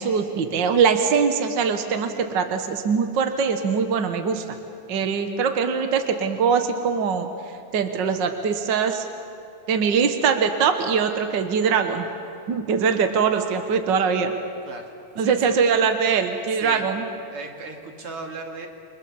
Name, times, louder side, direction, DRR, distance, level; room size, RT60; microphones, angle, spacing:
voice 1, 0.0-4.4 4.9-9.1 9.7-12.1 12.5-14.3 15.2-17.0, right 6 dB, 65° right, 7 dB, 1.1 m, -22 dB
voice 2, 15.2-15.6 16.5-16.9 17.3-18.7, right 3 dB, 45° right, 3 dB, 2.9 m, -36 dB
29.5 x 24.0 x 7.1 m, 2.5 s
omnidirectional pair, 3.9 m